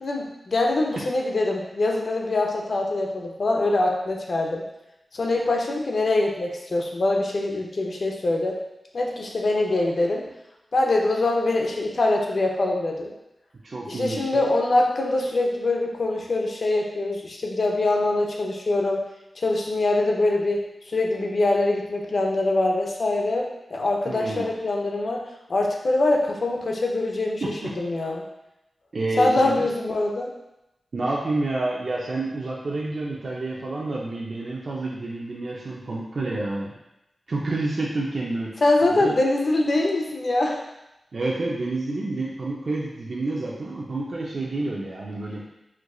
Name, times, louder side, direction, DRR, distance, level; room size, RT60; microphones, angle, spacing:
voice 1, 0.0-4.6 5.1-8.6 8.9-10.2 10.7-13.1 13.9-19.0 19.4-25.2 25.5-28.2 29.2-30.3 38.6-40.6, left 2 dB, 60° left, 0 dB, 0.6 m, -23 dB
voice 2, 13.6-14.4 24.1-24.5 27.4-27.7 28.9-29.7 30.9-36.7 37.3-38.5 38.9-39.1 41.1-45.4, right 2 dB, 60° right, -5 dB, 0.5 m, -29 dB
4.4 x 2.5 x 2.3 m, 0.91 s
wide cardioid pair, 75°, 0 cm